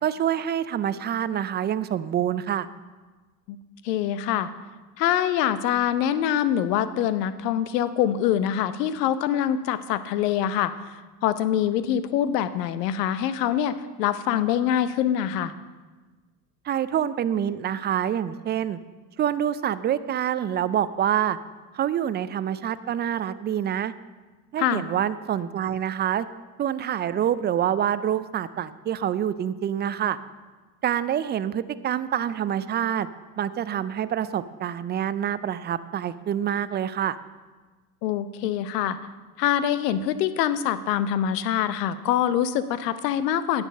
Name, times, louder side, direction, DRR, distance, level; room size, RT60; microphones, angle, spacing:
voice 1, 0.0-2.7 16.6-18.8 19.2-21.4 21.7-23.9 24.5-26.3 26.6-30.2 30.8-33.1 33.4-37.2, right 10 dB, 25° right, 15 dB, 0.3 m, -26 dB
voice 2, 3.8-4.5 5.0-11.0 11.2-15.5 24.6-24.8 38.0-39.0 39.4-43.6, left 10 dB, 85° left, 13 dB, 0.8 m, -24 dB
9.9 x 7.4 x 6.6 m, 1.3 s
hypercardioid pair, 80°, 47 cm